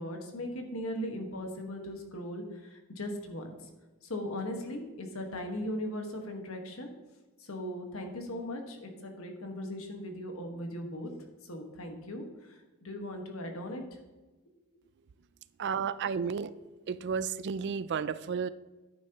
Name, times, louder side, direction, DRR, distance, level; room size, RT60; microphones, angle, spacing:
voice 1, 0.0-3.5 4.0-6.9 7.4-11.1 11.4-13.8, left 1 dB, 70° left, 4 dB, 1.5 m, -38 dB
voice 2, 15.6-16.5 16.9-18.5, right 6 dB, 50° right, 16 dB, 0.4 m, -32 dB
10.5 x 9.1 x 2.9 m, 1.2 s
head